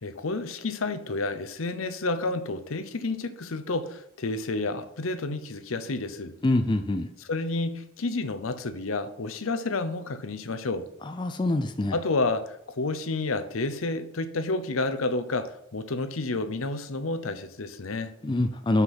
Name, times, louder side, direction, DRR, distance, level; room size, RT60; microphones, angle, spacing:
voice 1, 0.0-6.3 7.3-10.9 11.9-18.1, left 3 dB, 80° left, 0.7 m, -30 dB
voice 2, 6.4-7.1 11.1-12.0 18.2-18.8, left 2 dB, 20° left, 0.4 m, -25 dB
5.9 x 5.8 x 5.5 m
head